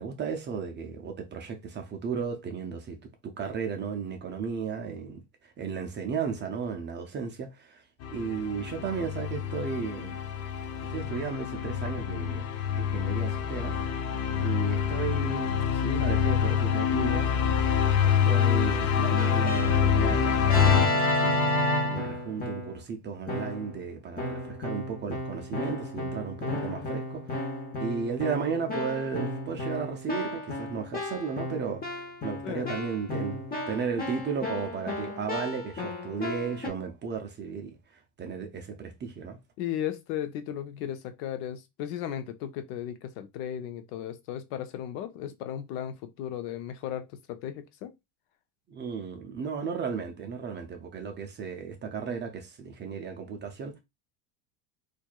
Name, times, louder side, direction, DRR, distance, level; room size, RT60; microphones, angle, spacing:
voice 1, 0.0-7.8 8.1-10.1 10.9-12.5 12.7-13.8 14.3-17.3 18.0-27.5 27.8-39.4 48.7-53.8, right 6 dB, 25° right, 0.4 m, -35 dB
sound 1, 8.0-20.9, left 8 dB, 35° left, 0.4 m, -26 dB
Keyboard (musical), 19.2-22.8 23.3-23.8 24.2-36.7, left 1 dB, 20° left, 1.1 m, -32 dB
voice 2, 32.4-32.8 39.6-47.9, left 10 dB, 70° left, 0.8 m, -35 dB
4.3 x 2.5 x 2.3 m
supercardioid pair, 120°, 48 cm